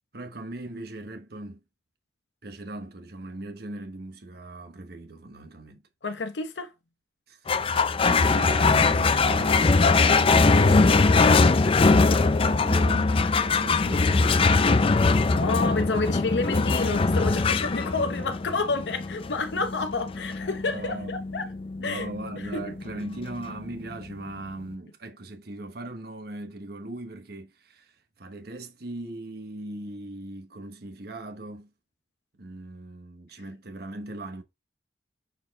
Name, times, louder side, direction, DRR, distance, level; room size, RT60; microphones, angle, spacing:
voice 1, 0.1-1.6 2.4-5.8 7.3-15.0 20.7-21.1 21.8-31.7 32.4-34.4, right 2 dB, 65° right, 1.1 m, -39 dB
voice 2, 6.0-6.7 15.3-21.5 21.8-22.1 22.5-22.6, left 3 dB, 80° left, 0.8 m, -29 dB
sound 1, 7.5-24.2, left 3 dB, 30° left, 0.4 m, -22 dB
6.8 x 4.4 x 3.6 m
head